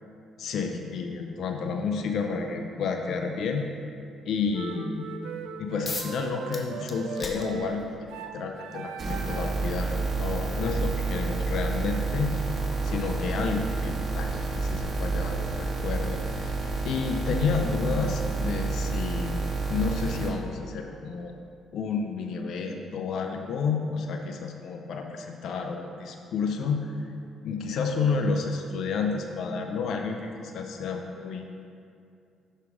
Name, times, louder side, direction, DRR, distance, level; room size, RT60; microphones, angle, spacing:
voice 1, 0.4-3.7 4.3-5.1 5.6-9.9 10.2-12.4 12.8-16.6 16.8-21.4 21.7-26.9 27.4-31.4, left 5 dB, 70° left, 4 dB, 0.5 m, -30 dB
sound 1, 4.5-9.6, right 7 dB, 80° right, 0.4 m, -39 dB
sound 2, 5.9-6.2 6.5-8.1 9.2-9.3 9.8-16.5, left 3 dB, 40° left, 1.0 m, -44 dB
sound 3, 9.0-20.3, right 3 dB, 45° right, 1.6 m, -29 dB
6.1 x 5.6 x 4.7 m, 2.5 s
supercardioid pair, 60°, 0 cm